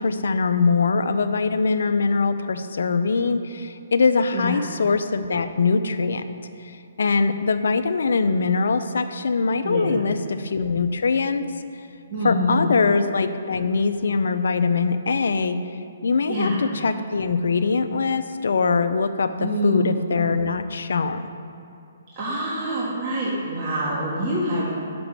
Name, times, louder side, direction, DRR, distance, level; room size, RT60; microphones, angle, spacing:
voice 1, 0.0-6.2 6.6-11.4 12.2-21.2, left 4 dB, 75° left, 10 dB, 0.5 m, -22 dB
voice 2, 4.3-4.6 9.6-10.1 12.1-12.7 16.3-16.6 19.4-20.0 22.1-24.7, equal, 35° right, -8 dB, 1.7 m, -25 dB
6.0 x 5.9 x 6.6 m, 2.7 s
hypercardioid pair, 145°, 0 cm